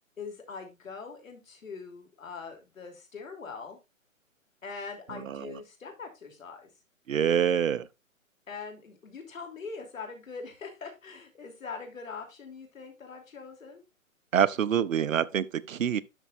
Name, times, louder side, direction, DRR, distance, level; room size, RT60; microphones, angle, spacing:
voice 1, 0.2-3.8 4.6-6.7 8.5-13.8, left 5 dB, 75° left, 3.2 m, -42 dB
voice 2, 7.1-7.9 14.3-16.0, right 8 dB, 70° right, 0.8 m, -26 dB
12.0 x 5.5 x 2.5 m
hypercardioid pair, 140°, 41 cm